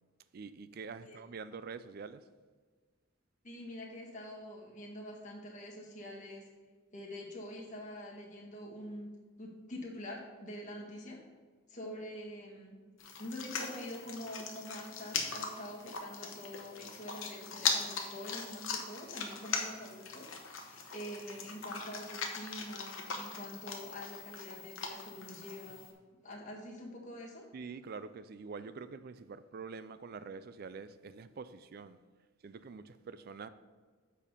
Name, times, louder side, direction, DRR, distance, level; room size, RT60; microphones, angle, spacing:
voice 1, 0.3-2.3 27.5-32.0 32.4-33.5, right 5 dB, 50° right, 13 dB, 0.4 m, -46 dB
voice 2, 3.4-6.5 6.9-11.3 11.7-12.8 13.2-25.8 26.2-27.5, left 1 dB, 40° left, -2 dB, 1.5 m, -45 dB
sound 1, 13.0-25.9, left 5 dB, 80° left, 1.0 m, -40 dB
7.3 x 4.6 x 5.1 m, 1.5 s
head